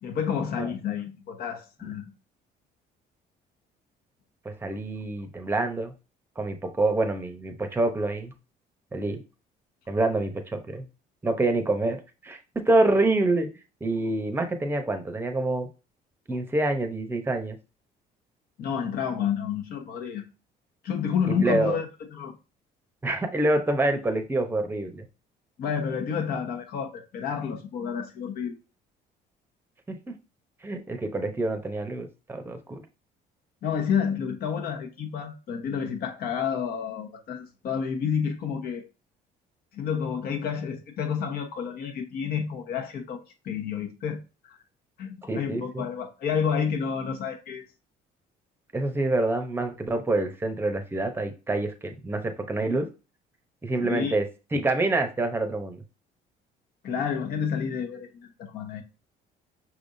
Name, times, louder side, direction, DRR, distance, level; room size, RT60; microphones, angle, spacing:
voice 1, 0.0-2.1 18.6-20.2 20.8-22.4 25.6-28.5 33.6-38.8 39.7-44.2 44.4-44.6 45.0-47.6 53.8-54.2 56.8-58.8, left 7 dB, 65° left, 1.1 m, -30 dB
voice 2, 4.4-5.9 6.4-8.3 8.9-9.2 9.9-10.9 11.2-12.0 12.2-12.4 12.7-13.5 13.8-15.7 16.3-17.6 21.3-21.8 23.0-25.1 29.9-30.0 30.6-32.8 45.3-45.9 48.7-52.9 53.6-54.3 54.5-55.8, right 2 dB, 15° right, 0.7 m, -26 dB
5.9 x 3.5 x 2.6 m
cardioid pair, 140°, 17 cm